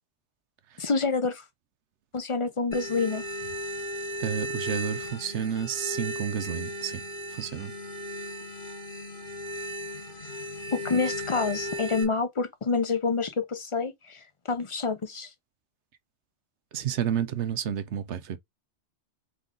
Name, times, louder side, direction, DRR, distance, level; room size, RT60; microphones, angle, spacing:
voice 1, 0.8-1.4 2.1-3.2 10.7-14.2 14.5-15.3, left 4 dB, 30° left, 0.7 m, -27 dB
sound 1, 2.7-12.0, equal, 50° left, 1.3 m, -36 dB
voice 2, 4.2-7.0 7.4-7.7 16.7-18.4, right 8 dB, 80° right, 1.0 m, -30 dB
3.8 x 3.6 x 3.7 m
omnidirectional pair, 1.1 m